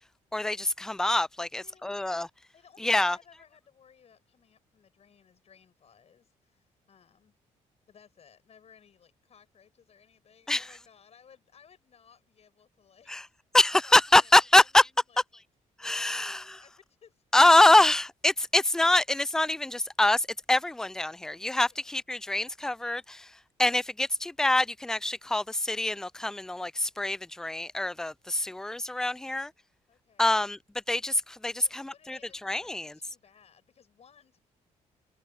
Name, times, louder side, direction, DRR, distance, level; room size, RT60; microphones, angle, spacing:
voice 1, 0.3-2.3 2.8-3.2 10.5-10.7 13.1-13.2 13.5-14.8 15.8-16.4 17.3-23.2 23.6-29.5 30.2-30.6 30.9-32.2 32.4-32.9, left 2 dB, 5° left, 0.3 m, -24 dB
voice 2, 1.5-2.2 2.5-7.3 7.9-13.3 13.8-14.8 15.1-15.2 15.8-17.2 21.6-21.9 29.9-30.4 31.6-34.4, left 7 dB, 50° left, 7.9 m, -60 dB
cardioid pair, 85°, 13 cm